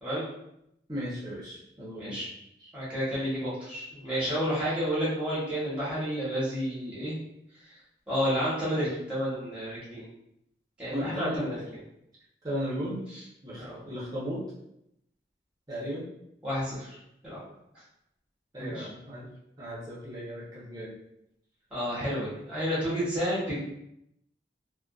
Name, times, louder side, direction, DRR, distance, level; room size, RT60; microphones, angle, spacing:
voice 1, 0.9-2.2 2.6-2.7 4.6-4.7 10.9-11.6 12.4-13.1 13.4-14.4 15.7-16.0 18.5-19.3 19.6-20.9 23.5-23.6, equal, 20° right, -7 dB, 0.6 m, -36 dB
voice 2, 2.7-7.1 8.1-10.1 10.8-11.5 13.6-13.8 16.4-17.0 17.2-17.4 18.6-18.9 21.7-23.6, equal, 5° right, -9 dB, 1.0 m, -30 dB
2.5 x 2.1 x 2.3 m, 0.79 s
head